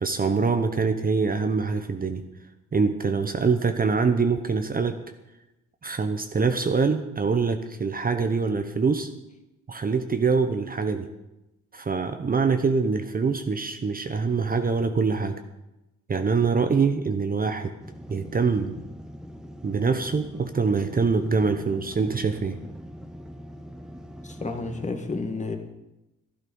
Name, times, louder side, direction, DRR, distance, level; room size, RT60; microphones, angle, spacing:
voice 1, 0.0-2.2 2.7-5.0 5.8-9.1 9.7-11.1 11.7-15.4 16.1-17.7 18.1-18.7 19.6-22.6, right 4 dB, 30° right, 7 dB, 0.9 m, -24 dB
sound 1, 17.8-24.9, equal, ahead, 1.0 m, -42 dB
voice 2, 24.2-25.6, left 3 dB, 25° left, 4 dB, 2.0 m, -31 dB
12.5 x 11.5 x 5.5 m, 0.96 s
cardioid pair, 90°, 30 cm